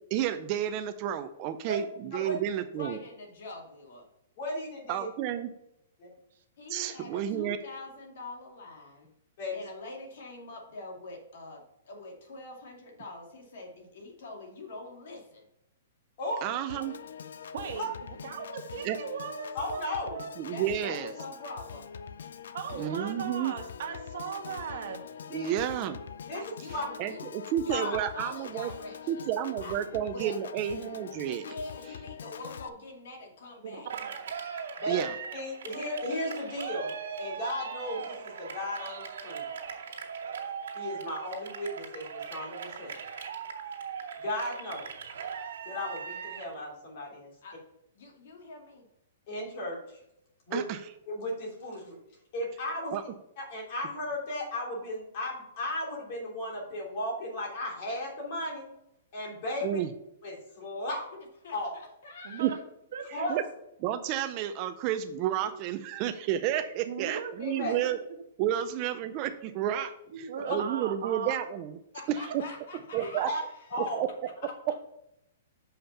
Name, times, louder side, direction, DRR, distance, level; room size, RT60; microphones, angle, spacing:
voice 1, 0.1-3.0 4.9-5.5 6.7-7.6 16.4-16.9 18.8-19.0 20.4-21.1 22.8-23.5 25.3-26.0 27.0-28.7 29.1-31.4 34.9-35.1 50.5-50.8 52.9-53.0 59.6-59.9 62.4-62.5 63.1-63.4 63.8-68.0 68.4-71.8 72.1-72.4 72.9-73.3 73.8-74.8, right 10 dB, 30° right, 9 dB, 0.4 m, -31 dB
voice 2, 2.7-4.1 6.6-9.1 9.5-15.4 20.5-21.9 26.3-27.2 27.6-29.3 29.6-29.8 30.1-30.4 31.3-33.9 47.4-47.6 47.9-48.8 61.1-62.6 71.9-73.9, left 2 dB, 60° left, 1 dB, 2.3 m, -44 dB
voice 3, 4.4-5.1 6.0-6.1 9.4-9.6 16.2-16.4 17.7-17.9 19.5-20.2 25.3-25.5 26.3-26.4 26.7-26.9 27.7-27.9 34.8-35.0 35.3-39.5 40.7-43.0 44.2-44.9 45.6-47.3 49.3-50.0 50.5-50.6 51.1-52.0 52.3-52.9 53.4-58.7 59.1-59.7 60.2-61.0 61.5-61.7 63.1-63.4 67.4-67.7 70.5-70.6 73.3-73.4 73.7-74.0, left 1 dB, 40° left, -2 dB, 3.0 m, -35 dB
Piano / Organ, 16.7-32.7, left 7 dB, 80° left, 0.5 m, -44 dB
voice 4, 17.5-17.9 18.2-20.3 22.5-25.0 33.6-34.3 62.2-62.6 62.9-63.0 66.8-67.3 67.6-67.9 70.1-71.4 73.2-73.3, right 6 dB, 55° right, 4 dB, 1.3 m, -38 dB
Cheering, 33.9-46.5, right 6 dB, 75° right, 2.3 m, -39 dB
7.0 x 5.7 x 5.5 m, 0.81 s
hypercardioid pair, 170°, 0 cm